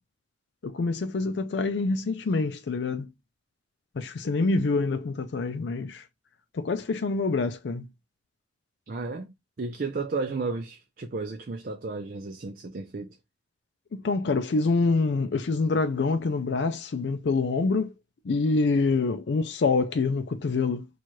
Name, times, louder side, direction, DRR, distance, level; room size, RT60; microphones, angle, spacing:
voice 1, 0.6-3.1 3.9-6.1 6.5-7.9 13.9-17.9 18.2-20.9, left 3 dB, 65° left, 0.4 m, -26 dB
voice 2, 8.9-13.2, right 3 dB, 50° right, 0.5 m, -33 dB
4.4 x 2.4 x 3.0 m
head